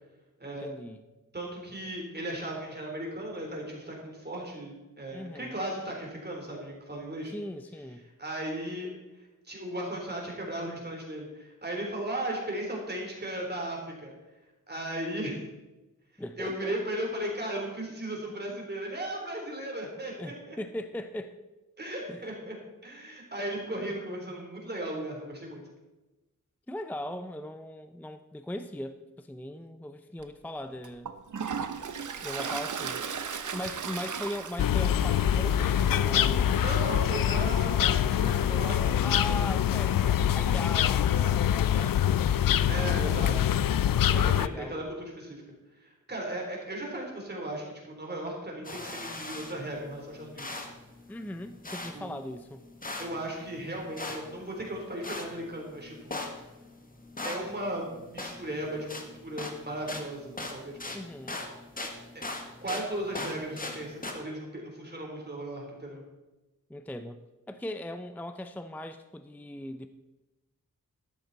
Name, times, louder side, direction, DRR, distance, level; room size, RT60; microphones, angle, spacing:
voice 1, 0.4-1.0 5.1-5.6 7.3-8.1 16.2-16.8 20.2-21.4 22.1-22.2 26.7-31.1 32.2-33.0 33.5-36.6 39.0-43.5 44.1-44.9 51.1-52.6 60.9-61.4 66.7-69.9, left 1 dB, 5° left, 9 dB, 0.5 m, -39 dB
voice 2, 1.3-7.3 8.2-8.9 9.5-14.1 14.7-15.4 16.4-20.6 21.8-22.5 22.8-25.6 36.6-39.0 42.7-43.3 44.1-45.4 45.8-50.6 51.9-52.1 53.0-56.2 57.2-61.0 62.6-66.0, right 1 dB, 30° right, -1 dB, 3.5 m, -36 dB
Toilet flush, 30.2-30.3 30.8-37.0, right 6 dB, 65° right, 0.9 m, -37 dB
sound 1, 34.6-44.5, left 10 dB, 85° left, 0.5 m, -25 dB
sound 2, 48.6-64.1, left 2 dB, 25° left, 1.5 m, -41 dB
13.0 x 12.0 x 4.0 m, 1.1 s
wide cardioid pair, 125°, 33 cm